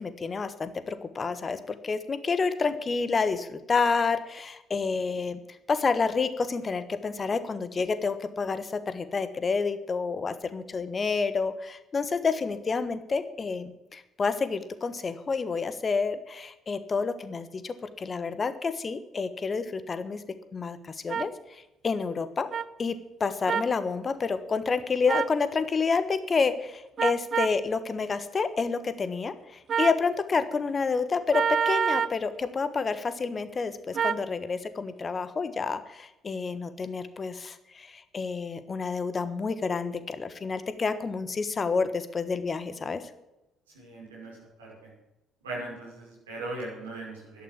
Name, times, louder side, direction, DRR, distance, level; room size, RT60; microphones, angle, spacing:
voice 1, 0.0-5.4 5.7-20.2 20.5-22.5 22.8-43.0, left 4 dB, 35° left, 12 dB, 1.3 m, -29 dB
sound 1, 21.1-21.3 22.5-22.6 23.5-23.7 25.1-25.4 27.0-27.6 29.7-30.0 31.3-32.2 33.9-34.2, right 7 dB, 45° right, 0.6 m, -27 dB
voice 2, 43.7-44.9 45.4-47.4, right 2 dB, 75° right, -4 dB, 5.6 m, -39 dB
12.0 x 11.5 x 7.4 m, 0.94 s
figure-of-eight pair, 45°, 0 cm